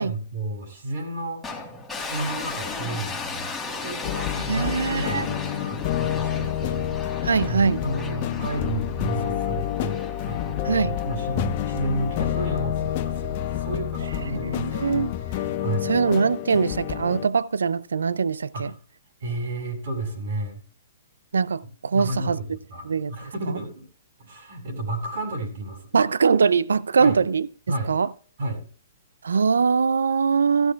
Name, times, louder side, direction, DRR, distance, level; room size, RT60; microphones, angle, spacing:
voice 1, 0.0-1.4 2.1-3.5 3.8-15.0 15.6-15.9 18.5-18.8 19.2-20.6 21.9-23.9 24.2-25.9 27.0-27.2 27.7-27.9 28.4-28.6, right 2 dB, 60° right, 7.3 m, -32 dB
sound 1, 1.4-12.7, left 4 dB, 5° left, 3.3 m, -36 dB
sound 2, 4.0-17.3, left 11 dB, 45° left, 1.0 m, -28 dB
voice 2, 4.4-5.3 7.2-7.8 10.6-11.0 14.3-15.1 15.8-18.7 21.3-22.4 22.8-23.1 25.9-27.5 27.9-28.1 29.2-30.7, right 5 dB, 75° right, 0.5 m, -22 dB
16.5 x 13.5 x 2.4 m
figure-of-eight pair, 120°, 0 cm